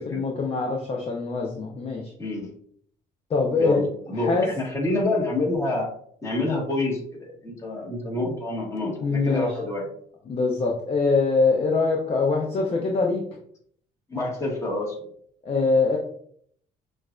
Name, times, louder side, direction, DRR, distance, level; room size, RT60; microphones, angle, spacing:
voice 1, 0.0-2.0 3.3-3.8 4.2-4.5 9.0-9.6 10.3-13.2 15.4-16.0, left 4 dB, 35° left, 0 dB, 0.6 m, -23 dB
voice 2, 2.2-2.5 3.6-5.9 6.2-9.8 14.1-15.0, left 2 dB, 15° left, -3 dB, 1.5 m, -27 dB
6.1 x 2.5 x 2.4 m, 0.63 s
cardioid pair, 110°, 17 cm